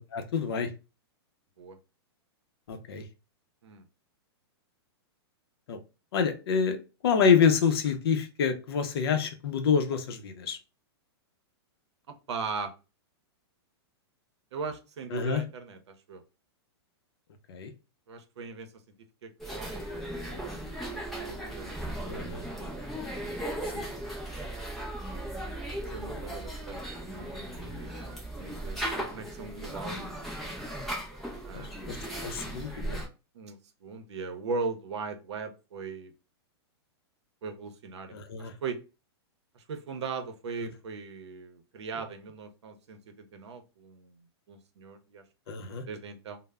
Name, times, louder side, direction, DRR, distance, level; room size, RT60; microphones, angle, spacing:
voice 1, 0.1-0.7 2.7-3.1 5.7-5.8 6.1-10.6 15.1-15.4 17.5-17.7 22.1-22.4 23.7-23.9 27.5-27.8 31.5-32.0 32.2-33.0 38.1-38.5 40.6-40.7 45.5-45.8, left 6 dB, 60° left, 0.5 m, -27 dB
voice 2, 12.1-12.7 14.5-15.8 16.1-16.2 18.1-18.7 19.2-20.6 20.9-22.7 25.9-30.1 31.4-32.1 33.3-36.1 37.4-38.8 39.5-44.2 44.5-46.4, right 4 dB, 85° right, 0.7 m, -39 dB
sound 1, 19.4-33.1, right 1 dB, ahead, 0.3 m, -37 dB
2.1 x 2.0 x 3.4 m
supercardioid pair, 165°, 14 cm